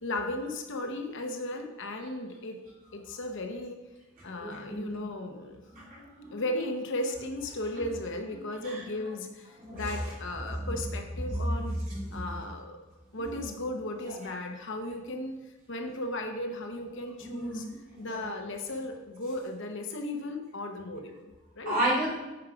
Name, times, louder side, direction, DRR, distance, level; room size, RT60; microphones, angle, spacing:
voice 1, 0.0-2.6 2.9-3.8 4.2-5.6 6.3-11.8 12.1-12.8 13.1-15.4 15.7-17.7 18.0-21.8, left 1 dB, 55° left, 4 dB, 0.9 m, -36 dB
voice 2, 4.4-5.1 5.7-6.4 8.6-8.7 9.6-9.9 10.6-10.7 11.3-12.3 13.2-13.3 17.2-17.6 21.6-22.1, right 1 dB, 40° right, -6 dB, 2.9 m, -32 dB
9.2 x 4.8 x 5.0 m, 1.1 s
head